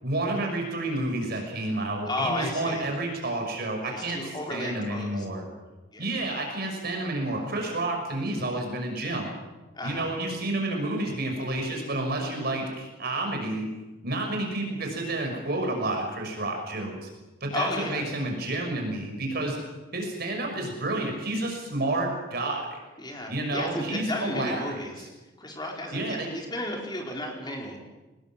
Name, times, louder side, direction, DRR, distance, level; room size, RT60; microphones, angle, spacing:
voice 1, 0.0-5.4 6.0-9.3 9.8-13.7 14.0-17.1 17.4-19.6 19.9-22.8 23.3-25.1 25.9-26.4, right 2 dB, 55° right, 2 dB, 5.9 m, -30 dB
voice 2, 2.0-2.9 3.8-5.2 5.9-6.1 9.7-10.1 17.5-18.0 23.0-25.1 25.4-27.8, left 1 dB, 25° left, 0 dB, 4.5 m, -33 dB
24.0 x 19.5 x 7.5 m, 1.1 s
head